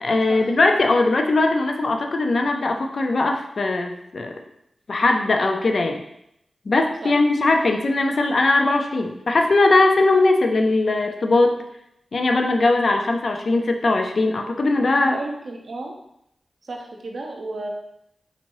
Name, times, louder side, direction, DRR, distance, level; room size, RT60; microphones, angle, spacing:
voice 1, 0.0-4.4 4.9-6.0 6.7-11.6 12.1-15.2, left 2 dB, 65° left, 4 dB, 0.4 m, -20 dB
voice 2, 14.8-16.0 16.6-17.7, right 2 dB, 65° right, 1 dB, 0.6 m, -33 dB
4.0 x 3.0 x 2.6 m, 0.78 s
cardioid pair, 55°, 0 cm